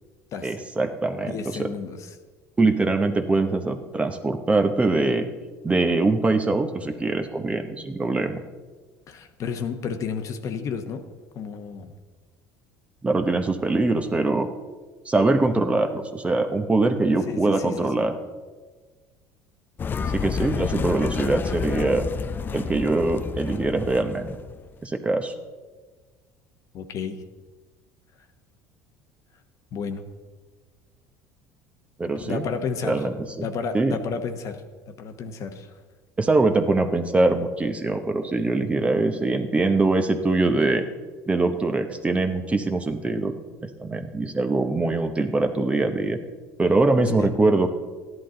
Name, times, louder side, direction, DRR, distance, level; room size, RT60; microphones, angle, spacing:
voice 1, 0.4-1.7 2.6-5.3 5.6-8.4 13.0-14.5 15.1-18.1 20.0-22.1 22.5-24.4 24.8-25.3 32.0-32.4 32.8-33.5 33.7-34.0 36.2-40.8 41.3-43.3 43.6-46.2 46.6-47.7, right 3 dB, 15° right, 6 dB, 0.9 m, -23 dB
voice 2, 1.2-2.1 9.1-11.0 11.3-11.9 17.3-18.1 26.7-27.2 29.7-30.1 32.2-33.0 33.4-35.8 47.2-47.3, left 6 dB, 50° left, 7 dB, 1.1 m, -32 dB
sound 1, 19.8-24.7, left 6 dB, 30° left, 0.5 m, -30 dB
13.5 x 11.0 x 3.9 m, 1.4 s
supercardioid pair, 110°, 7 cm